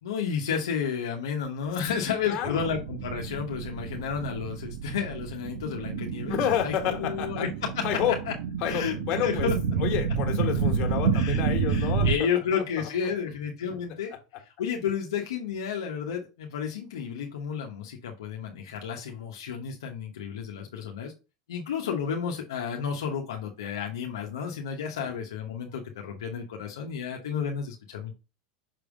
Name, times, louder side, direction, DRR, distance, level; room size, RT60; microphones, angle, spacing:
voice 1, 0.0-7.5 7.7-7.8 8.3-8.4 8.6-8.9 9.2-9.6 11.1-11.4 11.7-14.1 14.6-21.1 21.5-28.1, left 7 dB, 85° left, 1.0 m, -32 dB
voice 2, 1.8-2.7 6.3-7.5 7.8-8.2 8.6-12.6 25.0-25.1, left 10 dB, 50° left, 1.7 m, -30 dB
sound 1, 2.4-12.1, right 5 dB, 75° right, 1.0 m, -29 dB
5.9 x 3.5 x 5.0 m
supercardioid pair, 115°, 2 cm